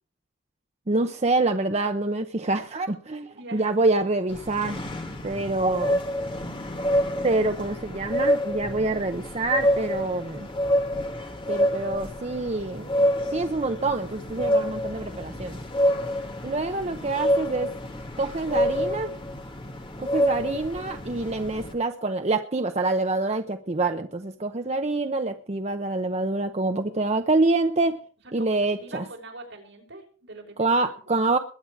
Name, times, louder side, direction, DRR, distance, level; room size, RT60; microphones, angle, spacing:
voice 1, 0.9-4.8 5.2-6.0 7.2-10.5 11.5-12.9 13.3-15.6 16.4-17.7 18.2-19.1 20.0-28.0 28.3-29.0 30.6-31.4, right 2 dB, 35° right, 7 dB, 0.8 m, -26 dB
voice 2, 3.3-3.7 15.8-16.2 28.4-31.2, right 2 dB, 70° right, 1 dB, 5.6 m, -44 dB
sound 1, 4.3-21.7, equal, 25° left, 2.1 m, -28 dB
21.5 x 8.8 x 4.8 m, 0.42 s
head